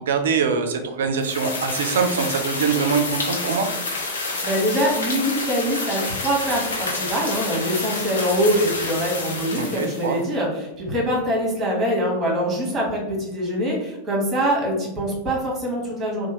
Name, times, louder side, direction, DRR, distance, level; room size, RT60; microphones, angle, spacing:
voice 1, 0.0-3.7 9.5-10.2, right 5 dB, 60° right, 6 dB, 0.4 m, -23 dB
sound 1, 1.2-10.2, left 3 dB, 70° left, 0.6 m, -28 dB
voice 2, 4.3-16.3, equal, 20° right, -2 dB, 1.1 m, -24 dB
2.8 x 2.1 x 2.9 m, 0.95 s
figure-of-eight pair, 90°, 0 cm